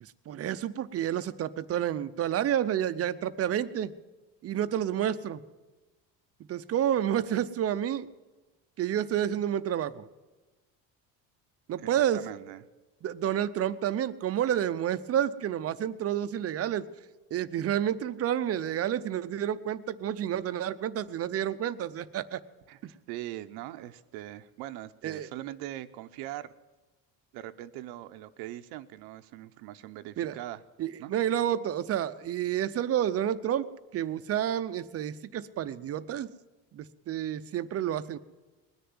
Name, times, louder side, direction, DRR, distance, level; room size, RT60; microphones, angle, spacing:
voice 1, 0.0-3.9 4.4-5.4 6.5-8.1 8.8-10.1 11.7-12.2 13.0-16.9 17.3-22.4 22.8-22.9 25.0-25.3 30.2-30.3 30.8-33.7 33.9-36.3 36.7-38.2, right 10 dB, 40° right, 12 dB, 0.6 m, -29 dB
voice 2, 11.8-12.6 22.7-26.5 27.3-30.6 31.0-31.1, right 14 dB, 85° right, 9 dB, 0.8 m, -41 dB
20.0 x 6.8 x 9.5 m, 1.1 s
cardioid pair, 135°, 37 cm